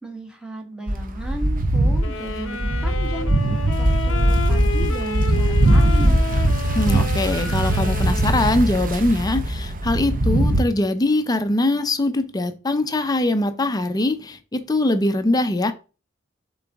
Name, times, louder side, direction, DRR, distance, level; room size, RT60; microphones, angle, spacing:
voice 1, 0.0-3.3 3.8-6.2, right 1 dB, 5° right, 1.3 m, -34 dB
sound 1, 0.9-10.6, right 1 dB, 40° right, 0.7 m, -20 dB
sound 2, 2.0-8.6, left 3 dB, 70° left, 0.7 m, -31 dB
voice 2, 6.7-15.7, left 2 dB, 20° left, 0.5 m, -22 dB
7.3 x 3.9 x 3.5 m
head